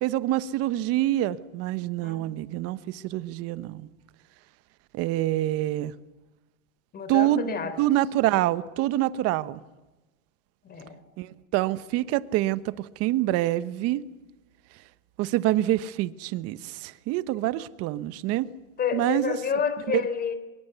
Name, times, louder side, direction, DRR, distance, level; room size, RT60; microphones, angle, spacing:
voice 1, 0.0-3.9 4.9-5.9 7.1-9.6 11.2-14.1 15.2-18.5 18.9-19.4 19.9-20.0, right 15 dB, 35° right, 1.0 m, -26 dB
voice 2, 6.9-7.8 10.6-11.0 18.8-20.3, left 7 dB, 20° left, 3.5 m, -29 dB
24.5 x 22.0 x 8.1 m
hypercardioid pair, 135°, 43 cm